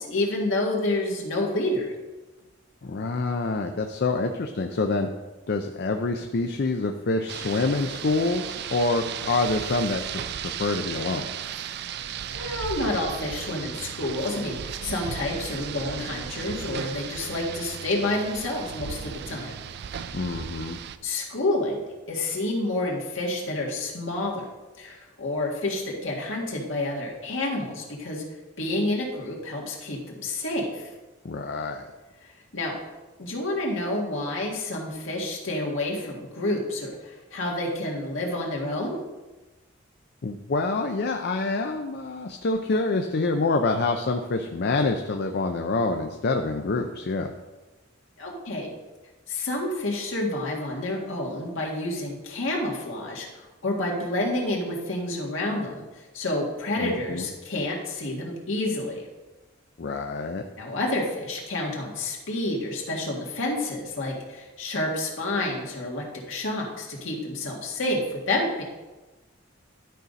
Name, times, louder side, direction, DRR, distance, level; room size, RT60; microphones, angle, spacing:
voice 1, 0.0-1.9 12.3-19.5 21.0-21.8 22.1-24.4 24.8-28.2 28.6-30.9 32.5-32.8 33.2-39.0 48.2-48.7 49.3-59.1 60.6-68.6, left 1 dB, 70° left, -2 dB, 1.9 m, -29 dB
voice 2, 2.8-5.1 5.5-11.3 20.1-20.8 31.2-31.9 40.2-47.3 56.8-57.3 59.8-60.4, left 3 dB, 55° left, 4 dB, 0.5 m, -26 dB
Rain, 7.3-21.0, right 8 dB, 55° right, 0.4 m, -35 dB
11.5 x 4.1 x 5.2 m, 1.2 s
head